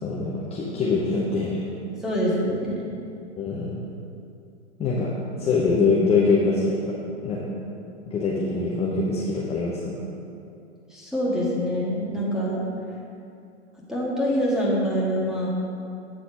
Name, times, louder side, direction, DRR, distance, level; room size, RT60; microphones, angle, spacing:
voice 1, 0.0-1.7 3.4-3.8 4.8-5.1 5.4-7.5 8.1-9.9, left 4 dB, 15° left, -5 dB, 0.8 m, -24 dB
voice 2, 2.0-2.9 10.9-12.6 13.9-15.5, equal, ahead, -6 dB, 1.6 m, -25 dB
8.8 x 4.0 x 5.0 m, 2.6 s
hypercardioid pair, 120°, 35 cm